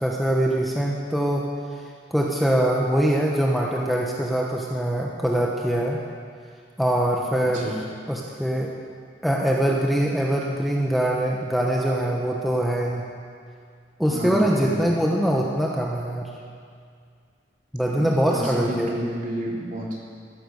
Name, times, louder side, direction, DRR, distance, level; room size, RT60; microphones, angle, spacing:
voice 1, 0.0-1.5 2.1-6.0 6.8-7.7 8.1-8.8 9.2-13.1 14.0-16.3 17.7-18.9, right 1 dB, ahead, -2 dB, 1.0 m, -23 dB
voice 2, 14.1-15.0 17.9-20.0, equal, 45° right, -3 dB, 3.1 m, -30 dB
14.5 x 11.5 x 6.8 m, 2.2 s
head